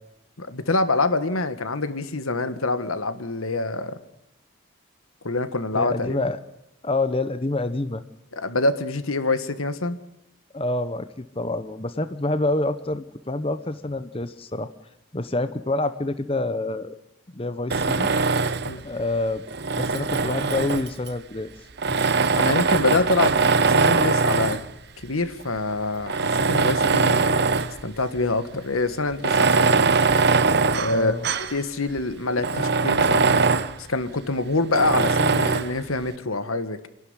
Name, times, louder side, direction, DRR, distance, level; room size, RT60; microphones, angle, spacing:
voice 1, 0.4-4.0 5.2-6.3 8.3-10.0 18.7-18.8 22.4-23.4 23.7-24.6 25.0-27.4 27.8-29.8 30.7-33.4 33.8-36.9, left 2 dB, 85° left, 12 dB, 1.6 m, -25 dB
voice 2, 5.7-6.4 6.8-8.0 10.5-14.7 15.1-16.9 17.3-18.1 18.8-19.4 19.7-21.5 30.9-31.2, left 2 dB, 25° left, 11 dB, 0.8 m, -27 dB
Tools, 17.7-18.8 19.5-21.1 21.8-24.7 25.4-25.5 26.0-27.8 28.2-28.3 29.1-31.6 32.0-32.1 32.4-33.8 34.7-35.8, right 4 dB, 50° right, 0.9 m, -21 dB
27.0 x 12.0 x 9.8 m, 0.80 s
head